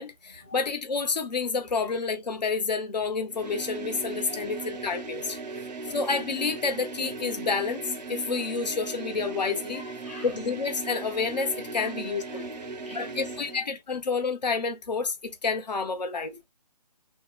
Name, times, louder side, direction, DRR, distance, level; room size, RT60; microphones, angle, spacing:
voice 1, 0.0-5.4 5.9-9.8 10.2-12.5 12.9-16.3, left 4 dB, 85° left, 0.7 m, -29 dB
sound 1, 3.3-13.6, right 3 dB, 85° right, 0.6 m, -38 dB
voice 2, 9.7-10.3 11.8-11.9 12.3-13.2 16.2-16.4, left 2 dB, 20° left, 0.7 m, -46 dB
2.7 x 2.2 x 2.3 m
hypercardioid pair, 170°, 21 cm